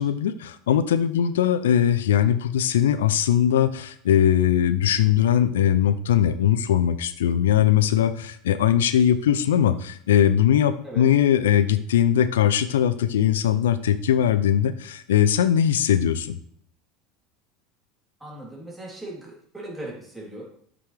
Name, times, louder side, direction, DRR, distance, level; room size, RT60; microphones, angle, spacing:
voice 1, 0.0-16.4, left 10 dB, 80° left, 13 dB, 0.4 m, -20 dB
voice 2, 18.2-20.4, right 1 dB, 5° right, -4 dB, 3.3 m, -38 dB
7.7 x 6.0 x 3.4 m, 0.63 s
hypercardioid pair, 80°, 0 cm